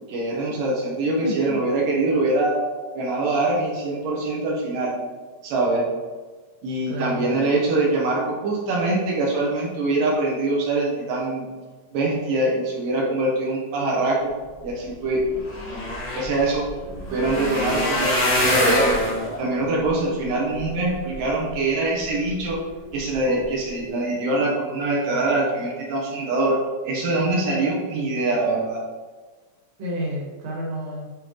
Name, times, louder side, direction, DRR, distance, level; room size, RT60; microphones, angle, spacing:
voice 1, 0.1-2.6 3.0-5.0 5.4-5.9 6.6-11.5 11.9-14.3 14.6-15.4 15.7-16.7 17.1-19.0 19.4-22.7 22.9-28.9, right 2 dB, 75° right, -3 dB, 2.6 m, -23 dB
voice 2, 1.2-1.6 6.9-7.3 29.8-31.1, equal, 55° right, -4 dB, 2.3 m, -30 dB
sound 1, 14.8-14.9 15.1-21.5 22.1-22.5 22.9-23.1 23.4-23.5, left 1 dB, 40° left, 1.0 m, -26 dB
9.5 x 3.8 x 3.1 m, 1.4 s
omnidirectional pair, 3.9 m